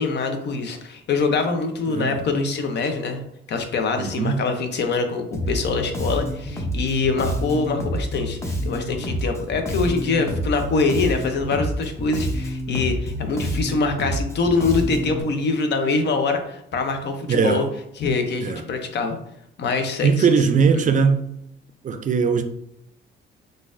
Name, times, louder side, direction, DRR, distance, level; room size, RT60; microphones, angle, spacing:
voice 1, 0.0-3.2 3.5-17.7 18.0-19.2 19.6-20.4 20.7-20.9, left 4 dB, 60° left, 0.6 m, -24 dB
voice 2, 1.9-2.2 4.0-4.4 17.3-17.6 18.4-18.6 20.0-21.2 21.8-22.4, right 5 dB, 40° right, 0.4 m, -20 dB
Bass guitar, 5.3-15.2, equal, 15° left, 0.7 m, -28 dB
3.8 x 2.5 x 2.5 m
cardioid pair, 90°, 20 cm